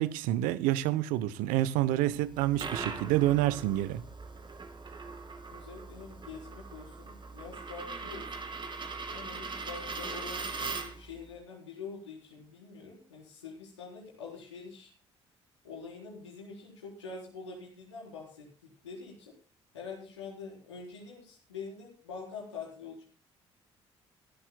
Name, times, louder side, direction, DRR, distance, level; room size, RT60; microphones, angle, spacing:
voice 1, 0.0-4.0, right 14 dB, 70° right, 0.8 m, -28 dB
Coin (dropping), 2.2-11.1, right 4 dB, 35° right, 2.3 m, -40 dB
voice 2, 5.5-8.5 9.1-14.9 15.6-19.3 19.7-23.0, left 5 dB, 90° left, 4.0 m, -45 dB
23.5 x 11.5 x 2.2 m
hypercardioid pair, 50°, 15 cm